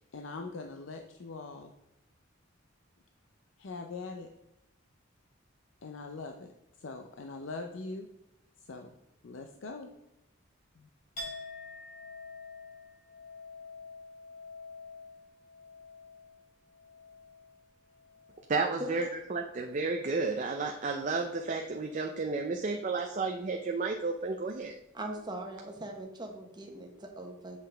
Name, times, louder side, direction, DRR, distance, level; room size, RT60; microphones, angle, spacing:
voice 1, 0.0-1.7 3.6-4.3 5.8-6.5 6.8-8.1 8.6-8.9 9.2-9.9 10.8-10.9, left 3 dB, 65° left, 4 dB, 0.5 m, -42 dB
Chink clink, 11.2-18.8 19.2-19.9, left 2 dB, 40° left, 2.8 m, -48 dB
voice 2, 18.5-24.7, right 3 dB, 40° right, 3 dB, 0.5 m, -32 dB
voice 3, 24.9-27.6, right 1 dB, 20° right, 2 dB, 1.0 m, -41 dB
7.6 x 5.4 x 3.4 m, 0.89 s
head